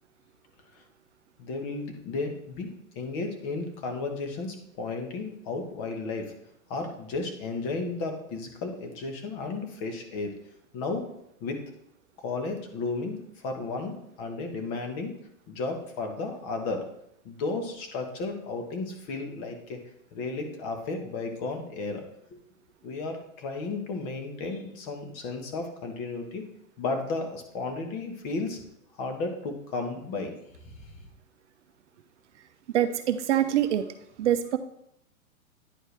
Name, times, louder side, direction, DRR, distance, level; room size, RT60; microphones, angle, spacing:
voice 1, 1.4-2.7 2.9-6.3 6.7-10.3 10.7-11.0 11.4-11.6 12.2-15.1 15.5-16.8 17.2-19.8 20.1-22.0 22.8-26.4 26.8-28.6 29.0-30.3 30.6-30.7, left 3 dB, 35° left, 4 dB, 1.3 m, -33 dB
voice 2, 32.7-33.9 34.2-34.6, right 11 dB, 55° right, 9 dB, 0.6 m, -24 dB
10.0 x 4.4 x 3.3 m, 0.75 s
hypercardioid pair, 130°, 42 cm